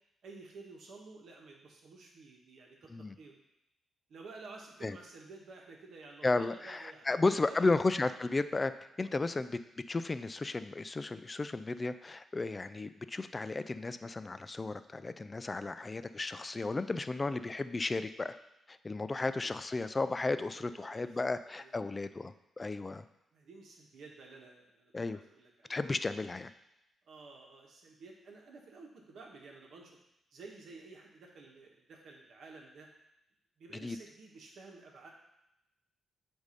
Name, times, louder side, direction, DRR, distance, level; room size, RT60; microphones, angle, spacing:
voice 1, 0.2-3.4 4.1-7.8 19.2-19.6 20.4-21.1 21.6-21.9 23.3-25.8 27.0-30.0 30.3-32.9 33.6-35.1, right 3 dB, 70° right, 0 dB, 1.3 m, -52 dB
voice 2, 6.2-8.7 9.0-9.6 9.9-18.4 18.7-23.0 24.9-25.2 25.7-26.5 33.8-34.0, left 3 dB, 25° left, 12 dB, 0.3 m, -34 dB
8.1 x 2.7 x 5.2 m, 0.86 s
cardioid pair, 90°, 0 cm